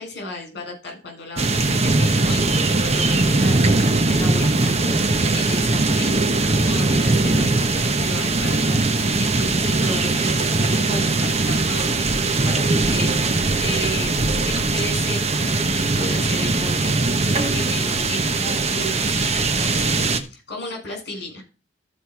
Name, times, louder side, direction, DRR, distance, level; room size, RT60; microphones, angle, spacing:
voice 1, 0.0-21.4, left 1 dB, 60° left, 2 dB, 6.9 m, -34 dB
sound 1, 1.4-20.2, right 3 dB, 35° right, 1.2 m, -20 dB
15.0 x 5.2 x 4.8 m, 0.33 s
head